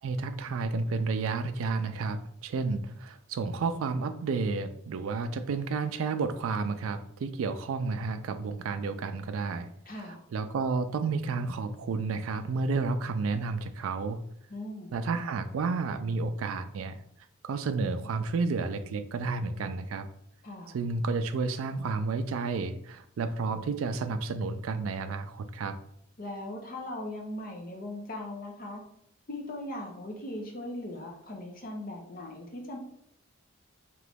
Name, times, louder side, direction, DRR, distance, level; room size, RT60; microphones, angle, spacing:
voice 1, 0.0-9.7 10.3-14.2 14.9-17.0 17.4-20.1 20.7-25.8, right 4 dB, 90° right, 9 dB, 0.3 m, -31 dB
voice 2, 9.9-10.2 14.5-14.9 20.4-20.8 26.2-28.8 29.3-32.8, left 1 dB, 45° left, 1 dB, 0.6 m, -39 dB
3.8 x 3.0 x 3.4 m, 0.70 s
head